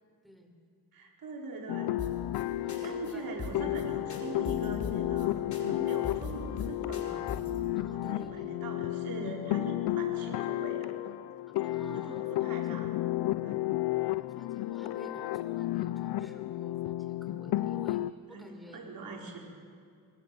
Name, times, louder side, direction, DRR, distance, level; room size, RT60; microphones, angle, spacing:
voice 1, 0.9-1.9 2.6-7.2 7.9-10.9 11.8-12.9 13.4-13.6 18.3-19.4, right 3 dB, 65° right, 0 dB, 4.9 m, -42 dB
sound 1, 1.7-18.1, left 16 dB, 85° left, 0.6 m, -32 dB
sound 2, 2.0-2.4 2.7-2.8 3.1-3.2 3.4-3.8 4.1-5.3 5.5-5.6 5.9-7.6, left 6 dB, 50° left, 4.6 m, -39 dB
voice 2, 2.6-3.2 7.7-8.6 11.6-12.6 13.9-18.9, equal, ahead, 4 dB, 5.2 m, -52 dB
25.0 x 21.0 x 7.9 m, 2.2 s
cardioid pair, 80°, 38 cm